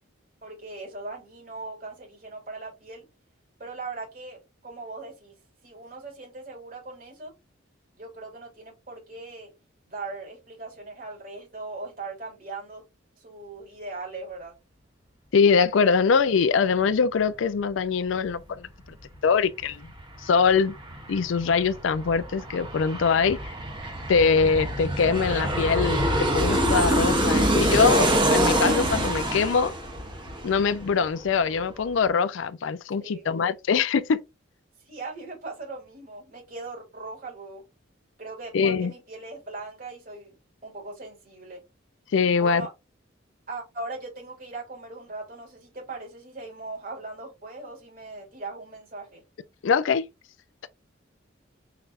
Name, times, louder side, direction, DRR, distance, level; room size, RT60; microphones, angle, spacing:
voice 1, 0.4-3.0 3.6-5.4 5.6-7.3 8.0-9.5 9.9-12.8 13.2-14.5 33.0-33.2 34.8-37.6 38.2-40.4 40.6-41.6 42.3-42.7 43.5-49.2, right 3 dB, 45° right, 3.0 m, -39 dB
voice 2, 15.3-18.7 19.2-19.9 20.2-20.7 21.1-23.5 24.1-29.7 30.4-34.2 38.5-38.9 42.1-42.6 49.6-50.1, left 5 dB, 75° left, 0.4 m, -23 dB
Aircraft, 19.6-19.7 20.0-31.3 31.6-31.7, right 1 dB, 25° right, 1.6 m, -25 dB
5.7 x 3.3 x 2.5 m
head